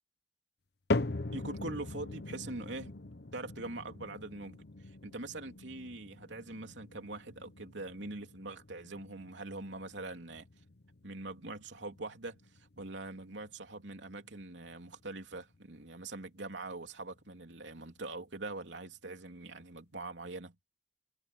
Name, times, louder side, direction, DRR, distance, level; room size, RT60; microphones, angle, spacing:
sound 1, 0.9-17.2 17.5-18.1 18.7-18.8 19.6-19.7, left 2 dB, 60° left, 1.0 m, -42 dB
voice 1, 1.3-3.0 3.3-10.5 11.0-20.5, right 2 dB, 80° right, 3.2 m, -43 dB
head